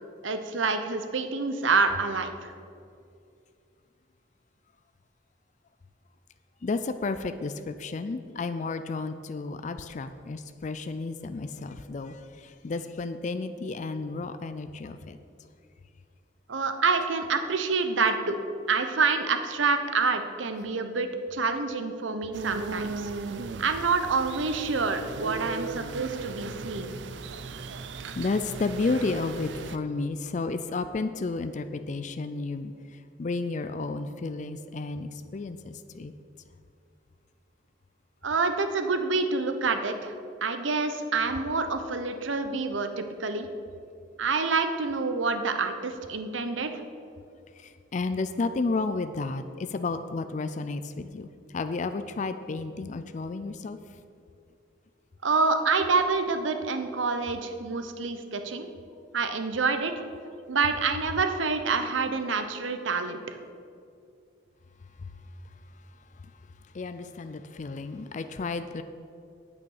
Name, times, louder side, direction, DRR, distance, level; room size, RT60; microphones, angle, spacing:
voice 1, 0.2-2.5 16.5-18.4 18.7-23.1 23.6-27.0 38.2-40.1 40.4-43.5 44.2-46.8 55.2-58.7 59.1-59.9 60.5-63.4, right 4 dB, 90° right, 8 dB, 0.8 m, -27 dB
voice 2, 6.6-15.2 28.2-32.7 33.2-36.1 47.6-53.8 65.0-65.1 66.7-68.8, left 3 dB, 40° left, 10 dB, 0.4 m, -32 dB
sound 1, 22.3-29.8, right 4 dB, 70° right, 0.5 m, -37 dB
8.8 x 8.5 x 6.4 m, 2.4 s
head